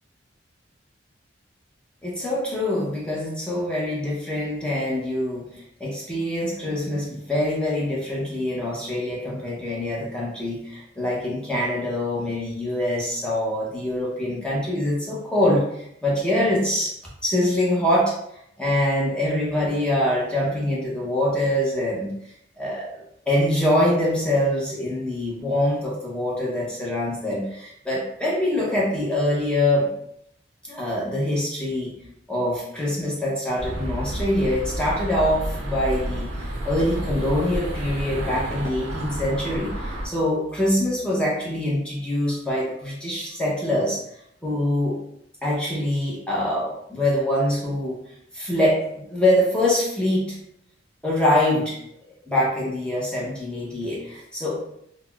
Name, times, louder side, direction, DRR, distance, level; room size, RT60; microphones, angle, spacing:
voice 1, 2.0-17.0 17.2-18.2 18.6-22.1 22.6-23.0 23.3-29.9 30.7-31.9 32.3-36.3 36.6-44.0 44.4-45.0 45.4-48.0 48.3-50.4 51.0-51.8 52.3-54.6, left 1 dB, 5° left, -6 dB, 0.6 m, -24 dB
sound 1, 33.6-40.1, right 1 dB, 75° right, 0.6 m, -30 dB
3.9 x 2.0 x 2.2 m, 0.75 s
head